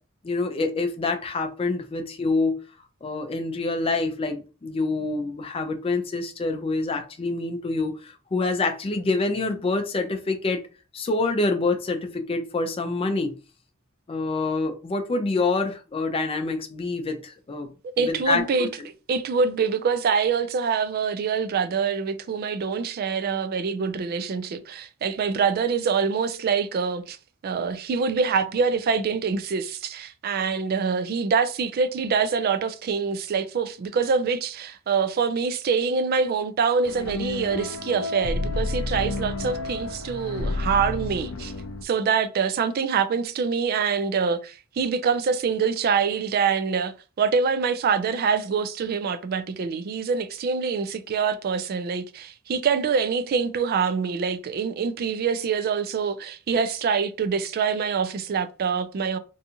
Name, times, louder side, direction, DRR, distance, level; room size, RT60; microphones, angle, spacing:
voice 1, 0.2-2.6 3.0-10.6 10.9-13.4 14.1-17.7 18.0-18.7, left 3 dB, 25° left, 0.4 m, -26 dB
voice 2, 17.8-18.7 19.1-27.2 27.4-41.5 41.8-59.2, right 5 dB, 45° right, 0.3 m, -25 dB
sound 1, 36.9-41.8, left 2 dB, 85° left, 0.5 m, -30 dB
2.6 x 2.3 x 2.7 m
head